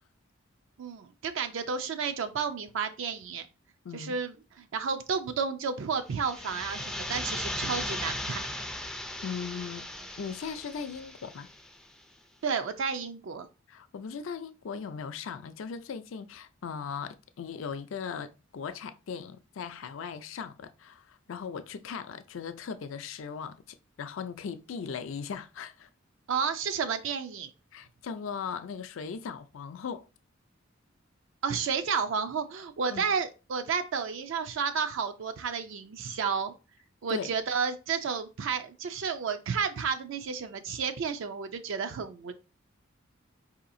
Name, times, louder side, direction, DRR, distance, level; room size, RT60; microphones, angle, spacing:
voice 1, 0.8-3.5 3.9-8.5 12.4-13.5 26.3-27.5 31.4-36.5 37.0-42.3, right 6 dB, 70° right, 0.4 m, -31 dB
sound 1, 6.1-11.8, left 1 dB, 5° left, 0.3 m, -37 dB
voice 2, 9.2-9.9 10.2-11.5 13.7-25.9 27.7-30.1 32.9-33.1 37.1-37.3, left 6 dB, 70° left, 0.4 m, -38 dB
4.7 x 2.8 x 2.6 m
head